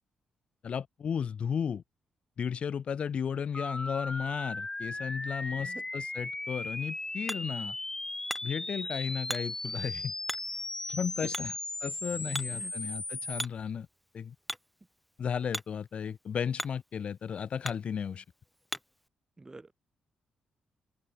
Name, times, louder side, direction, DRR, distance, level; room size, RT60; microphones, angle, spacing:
voice 1, 0.6-1.8 2.4-7.8 8.4-10.1 10.9-11.5 11.8-13.9 14.1-14.3 15.2-18.2, left 7 dB, 55° left, 0.7 m, -34 dB
sound 1, 3.5-13.4, left 2 dB, 20° left, 1.4 m, -37 dB
Hammer, 6.4-19.1, equal, ahead, 1.5 m, -44 dB
voice 2, 19.4-19.7, right 2 dB, 25° right, 4.3 m, -45 dB
open air
supercardioid pair, 50°, 2 cm